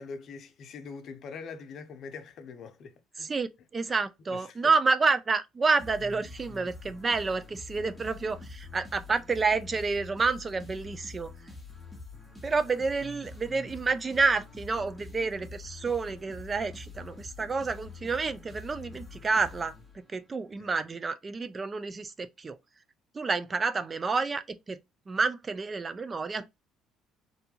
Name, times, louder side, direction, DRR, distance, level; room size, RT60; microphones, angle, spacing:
voice 1, 0.0-3.3 3.8-4.0 4.3-4.6 20.6-20.7, left 5 dB, 60° left, 0.6 m, -43 dB
voice 2, 3.2-11.3 12.4-19.7 20.1-22.6 23.1-24.8 25.1-26.5, right 4 dB, 30° right, 0.3 m, -29 dB
sound 1, 5.8-20.4, left 3 dB, 5° right, 0.9 m, -46 dB
2.6 x 2.3 x 2.7 m
cardioid pair, 95°, 0 cm